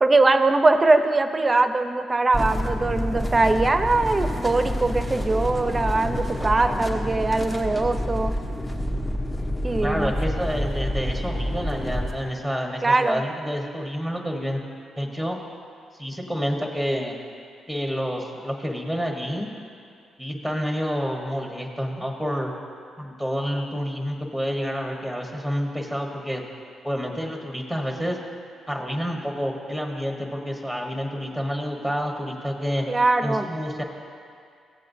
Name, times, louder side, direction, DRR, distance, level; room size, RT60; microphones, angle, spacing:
voice 1, 0.0-8.3 9.6-10.1 12.8-13.2 32.9-33.4, right 3 dB, 30° right, 8 dB, 0.6 m, -21 dB
sound 1, 2.3-12.1, equal, 25° left, 1.1 m, -28 dB
voice 2, 9.8-14.6 15.0-15.4 16.0-17.2 17.7-19.5 20.2-22.5 23.0-26.4 26.8-28.2 28.7-32.9 33.2-33.8, equal, 5° left, 0 dB, 1.4 m, -28 dB
15.0 x 7.4 x 2.7 m, 2.3 s
hypercardioid pair, 50°, 0 cm